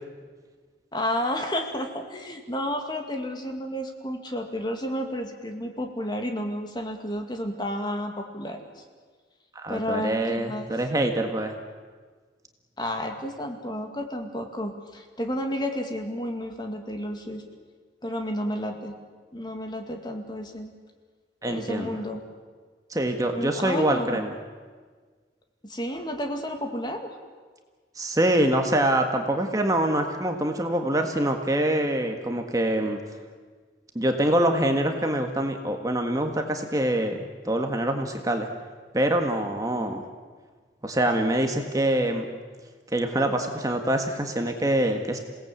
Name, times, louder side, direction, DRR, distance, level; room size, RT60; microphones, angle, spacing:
voice 1, 0.9-8.8 9.7-10.7 12.8-17.4 18.0-19.0 19.3-20.7 21.4-22.2 23.3-24.2 25.6-27.1 39.7-40.0, equal, 25° left, 4 dB, 2.2 m, -31 dB
voice 2, 9.5-11.5 21.4-22.0 22.9-24.3 27.9-33.0 33.9-37.2 37.4-38.5 38.9-40.0 40.8-42.3 42.9-45.2, right 1 dB, 20° right, 4 dB, 1.6 m, -25 dB
27.5 x 18.0 x 8.4 m, 1.5 s
head